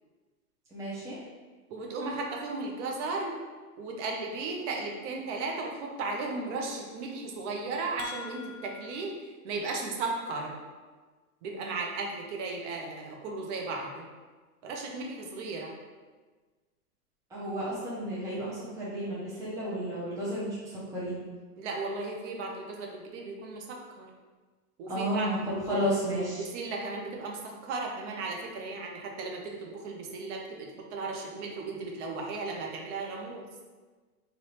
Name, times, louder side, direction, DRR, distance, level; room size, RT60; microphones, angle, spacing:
voice 1, 0.7-1.2 17.3-21.2 24.9-25.4 25.7-26.5, equal, 5° right, -9 dB, 0.7 m, -32 dB
voice 2, 1.7-3.4 3.8-10.6 11.4-14.1 14.6-15.7 21.6-24.1 24.8-25.9 26.1-33.4, right 3 dB, 50° right, 0 dB, 0.9 m, -35 dB
sound 1, 7.5-9.0, left 7 dB, 60° left, 0.9 m, -45 dB
3.5 x 2.6 x 4.2 m, 1.3 s
hypercardioid pair, 130°, 45 cm